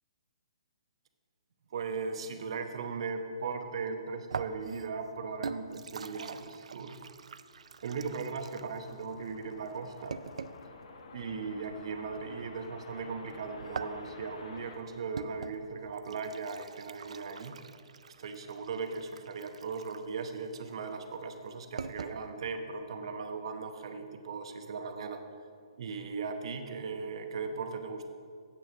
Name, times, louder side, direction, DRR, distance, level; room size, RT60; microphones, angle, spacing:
voice 1, 1.7-7.1 7.8-10.2 11.1-17.6 18.2-25.2 25.8-28.1, right 5 dB, 55° right, 7 dB, 0.9 m, -38 dB
sound 1, 4.3-10.7 13.4-22.2, right 5 dB, 80° right, 0.4 m, -44 dB
sound 2, 7.5-15.9, left 4 dB, 65° left, 1.0 m, -51 dB
8.5 x 6.4 x 6.1 m, 2.3 s
hypercardioid pair, 155°, 3 cm